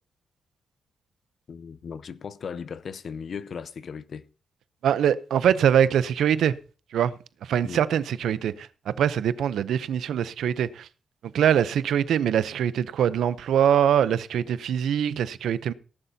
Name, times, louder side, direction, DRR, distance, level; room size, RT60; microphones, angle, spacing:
voice 1, 1.5-4.3 7.6-7.8, left 6 dB, 45° left, 0.6 m, -37 dB
voice 2, 4.8-6.6 6.9-7.1 7.4-10.9 11.3-15.7, right 9 dB, 85° right, 0.6 m, -23 dB
17.5 x 11.5 x 2.8 m
wide cardioid pair, 175°, 0 cm